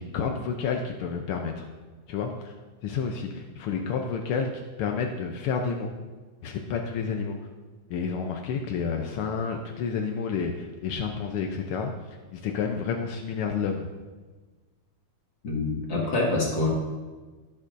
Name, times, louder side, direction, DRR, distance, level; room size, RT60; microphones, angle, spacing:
voice 1, 0.0-1.7 2.1-2.5 2.8-5.9 6.4-7.4 7.9-11.9 12.3-13.9, left 5 dB, 85° left, 3 dB, 1.2 m, -30 dB
voice 2, 15.4-16.7, left 2 dB, 45° left, -3 dB, 2.2 m, -26 dB
16.5 x 7.2 x 2.6 m, 1.3 s
omnidirectional pair, 3.3 m